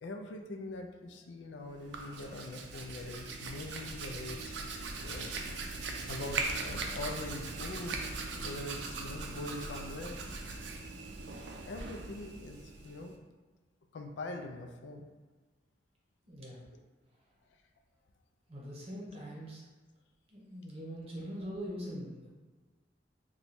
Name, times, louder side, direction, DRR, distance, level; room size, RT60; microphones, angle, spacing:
voice 1, 0.0-4.5 5.0-5.3 6.1-10.2 11.7-13.2 13.9-15.1, left 2 dB, 75° left, 4 dB, 0.4 m, -43 dB
Hands, 1.7-13.1, right 3 dB, 65° right, 0.4 m, -40 dB
voice 2, 16.3-16.6 18.5-19.6 20.3-22.3, equal, 35° right, -5 dB, 0.9 m, -42 dB
3.0 x 2.3 x 4.1 m, 1.3 s
head